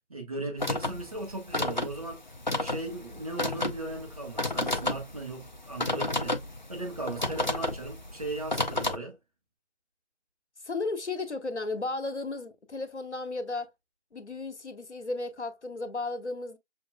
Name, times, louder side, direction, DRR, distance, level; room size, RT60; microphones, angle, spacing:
voice 1, 0.1-2.2 2.5-6.4 6.7-9.2, right 2 dB, 30° right, 1.1 m, -37 dB
sound 1, 0.6-9.0, left 2 dB, 40° left, 0.5 m, -32 dB
voice 2, 10.6-13.7 14.1-16.6, left 3 dB, 75° left, 1.1 m, -34 dB
6.3 x 2.7 x 2.2 m
figure-of-eight pair, 160°, 35 cm